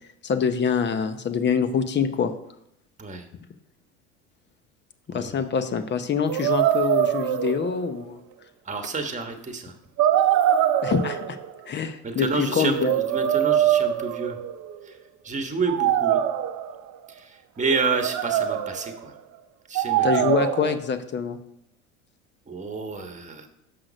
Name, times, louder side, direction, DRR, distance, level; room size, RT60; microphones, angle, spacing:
voice 1, 0.2-2.3 5.1-8.2 10.8-11.4 11.7-12.9 20.0-21.4, left 6 dB, 30° left, 10 dB, 0.8 m, -25 dB
voice 2, 5.1-5.4 8.6-9.8 12.0-14.4 14.8-15.0 15.2-16.2 17.1-19.1 19.7-20.4 22.5-23.5, right 4 dB, 20° right, 6 dB, 1.3 m, -29 dB
sound 1, 6.3-8.0 8.8-8.9 10.0-11.5 12.5-14.8 15.7-16.9 17.6-18.9 19.8-20.8, right 11 dB, 50° right, 0.7 m, -23 dB
6.6 x 5.8 x 5.1 m, 0.77 s
supercardioid pair, 90°, 34 cm